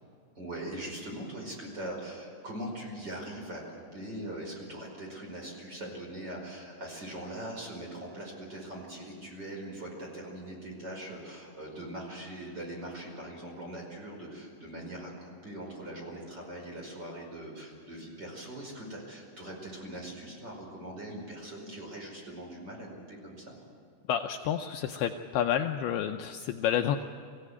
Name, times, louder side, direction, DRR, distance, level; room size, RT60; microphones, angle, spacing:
voice 1, 0.4-23.5, right 1 dB, 20° right, -1 dB, 5.3 m, -41 dB
voice 2, 24.1-27.0, left 9 dB, 85° left, 5 dB, 2.2 m, -29 dB
24.5 x 16.0 x 9.6 m, 2.4 s
omnidirectional pair, 5.4 m